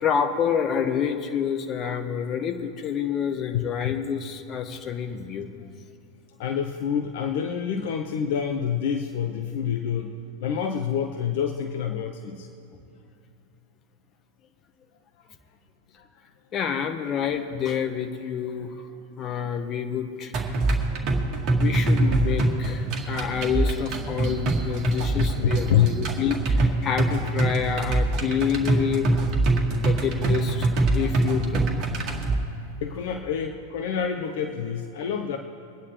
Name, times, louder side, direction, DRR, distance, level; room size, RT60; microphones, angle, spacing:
voice 1, 0.0-5.6 16.5-18.9 19.2-20.3 21.6-29.2 29.7-31.7, left 7 dB, 30° left, 7 dB, 1.1 m, -28 dB
voice 2, 3.5-3.9 6.4-10.1 10.4-12.5 25.2-25.9 32.8-35.4, left 8 dB, 50° left, 5 dB, 0.7 m, -27 dB
sound 1, 20.3-32.3, right 2 dB, 35° right, 1.9 m, -24 dB
23.5 x 9.7 x 3.2 m, 2.6 s
figure-of-eight pair, 90°, 0 cm